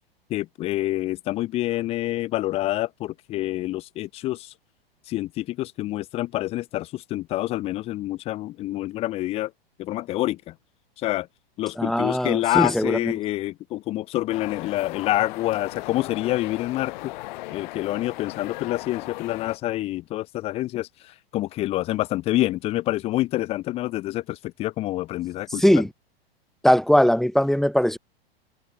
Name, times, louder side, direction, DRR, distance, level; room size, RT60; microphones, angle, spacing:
voice 1, 0.3-4.5 5.1-9.5 9.8-10.5 11.0-11.3 11.6-17.1 17.5-25.6, left 16 dB, 20° left, 0.4 m, -27 dB
voice 2, 11.8-13.1 25.6-25.9 26.6-28.0, equal, ahead, 0.9 m, -20 dB
sound 1, 14.3-19.6, left 20 dB, 50° left, 1.6 m, -37 dB
figure-of-eight pair, 100°, 30 cm